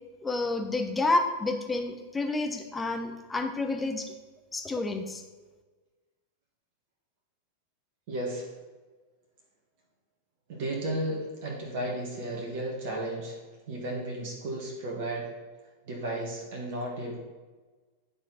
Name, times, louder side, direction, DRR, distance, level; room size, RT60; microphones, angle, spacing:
voice 1, 0.2-4.1 4.5-5.2, left 2 dB, 10° left, 5 dB, 0.8 m, -29 dB
voice 2, 8.1-8.5 10.5-13.4 13.7-15.3 15.8-17.2, right 1 dB, 50° right, -1 dB, 1.5 m, -34 dB
9.7 x 4.3 x 4.1 m, 1.3 s
figure-of-eight pair, 90°, 0 cm